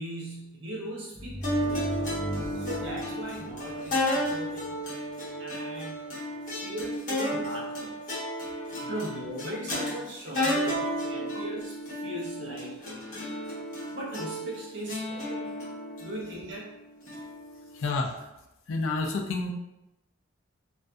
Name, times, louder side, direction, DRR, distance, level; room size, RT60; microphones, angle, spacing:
voice 1, 0.0-2.2 2.5-4.9 5.4-6.0 6.6-8.0 8.8-13.3 13.9-15.6 16.0-16.7, right 1 dB, 60° right, -4 dB, 0.7 m, -39 dB
sound 1, 1.1-4.7, equal, 15° right, 0.4 m, -38 dB
sound 2, 1.4-17.9, equal, 35° left, 1.0 m, -33 dB
voice 2, 17.7-18.1 18.7-19.5, left 3 dB, 70° left, 3 dB, 0.4 m, -30 dB
2.5 x 2.5 x 2.2 m, 0.92 s
head